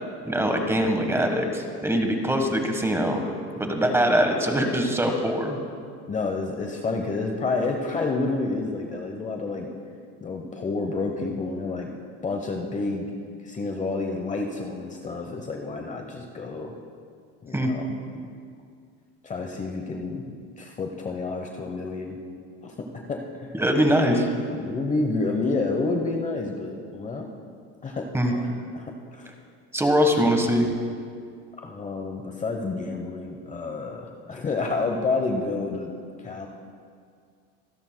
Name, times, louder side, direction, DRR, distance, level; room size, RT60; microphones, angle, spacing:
voice 1, 0.2-3.2 3.6-5.6 17.5-17.7 23.5-24.3 28.1-28.3 29.7-30.7, equal, 5° right, 4 dB, 1.3 m, -22 dB
voice 2, 6.1-9.7 10.2-11.9 12.2-13.1 13.4-16.7 17.4-18.3 19.2-20.2 20.6-22.2 22.6-23.5 24.6-27.3 27.8-29.3 31.6-35.9 36.2-36.5, left 3 dB, 20° left, 2 dB, 0.9 m, -29 dB
26.0 x 10.5 x 2.2 m, 2.2 s
supercardioid pair, 115°, 33 cm